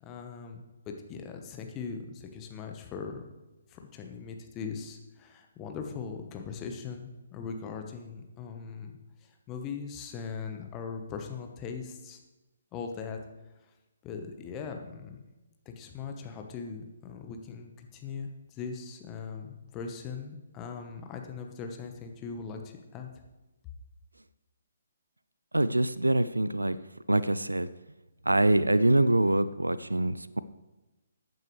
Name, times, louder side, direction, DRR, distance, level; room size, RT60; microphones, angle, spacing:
voice 1, 0.0-3.3 3.7-8.9 9.2-12.2 12.7-13.2 14.0-15.2 15.6-23.1, left 5 dB, 20° left, 4 dB, 1.2 m, -40 dB
voice 2, 25.5-26.8 27.1-27.7 28.3-30.4, right 1 dB, 80° right, 16 dB, 0.4 m, -24 dB
14.5 x 9.2 x 3.3 m, 1.1 s
figure-of-eight pair, 135°, 0 cm